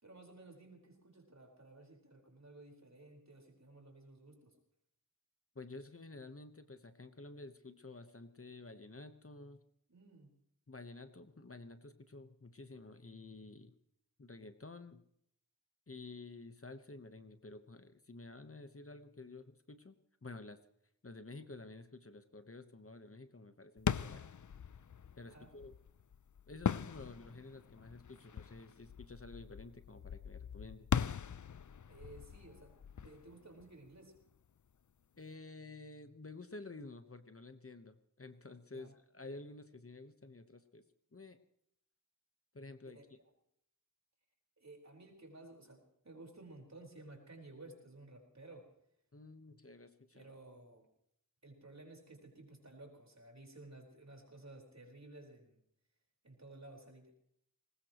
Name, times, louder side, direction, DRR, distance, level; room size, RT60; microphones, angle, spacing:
voice 1, 0.0-4.5 9.9-10.3 23.9-24.3 25.2-25.5 31.9-34.1 38.7-38.9 42.8-43.0 44.6-48.7 50.1-50.9 51.4-55.6 56.2-57.1, right 2 dB, 50° right, 1 dB, 4.7 m, -55 dB
voice 2, 5.5-9.6 10.7-13.7 14.2-15.0 15.9-20.6 21.0-24.1 25.1-25.8 26.5-30.9 35.2-40.8 41.1-41.4 42.5-43.2 49.1-50.3, left 3 dB, 40° left, 9 dB, 1.1 m, -51 dB
sound 1, 23.8-34.4, left 7 dB, 60° left, 0.5 m, -41 dB
21.0 x 19.5 x 3.1 m, 0.73 s
wide cardioid pair, 65°, 35 cm